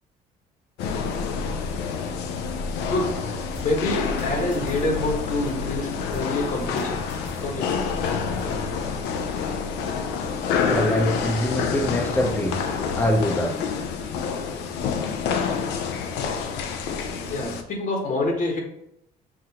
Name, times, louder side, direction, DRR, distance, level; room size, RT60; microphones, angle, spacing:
sound 1, 0.8-17.6, left 6 dB, 85° left, 0.5 m, -28 dB
sound 2, 3.5-5.6 6.1-8.6, right 1 dB, 10° right, 1.2 m, -42 dB
voice 1, 3.6-7.0 7.4-7.8 17.3-18.6, left 2 dB, 50° left, 2 dB, 1.2 m, -26 dB
voice 2, 10.6-12.5 13.0-13.5, equal, 10° left, -1 dB, 0.7 m, -23 dB
6.0 x 2.5 x 2.9 m, 0.77 s
cardioid pair, 110°, 17 cm